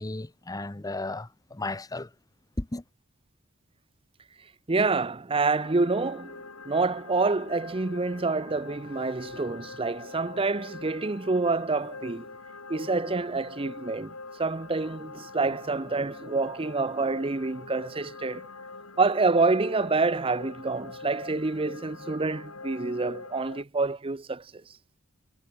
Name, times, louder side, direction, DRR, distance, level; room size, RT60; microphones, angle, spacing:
voice 1, 0.0-2.1 2.6-2.8, left 2 dB, 15° left, 0.7 m, -34 dB
voice 2, 4.7-6.4 6.7-12.3 12.7-14.1 14.4-18.5 19.0-24.4, right 3 dB, 25° right, 0.7 m, -27 dB
sound 1, 5.5-23.6, left 3 dB, 80° left, 6.4 m, -44 dB
head